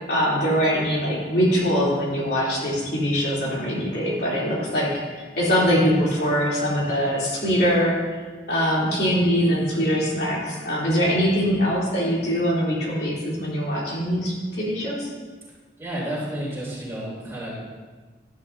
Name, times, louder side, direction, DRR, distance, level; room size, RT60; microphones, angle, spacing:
voice 1, 0.1-8.2 8.5-15.1, equal, 60° left, -6 dB, 3.1 m, -23 dB
voice 2, 15.8-17.6, right 1 dB, 15° right, -7 dB, 3.2 m, -31 dB
12.0 x 9.5 x 2.7 m, 1.4 s
head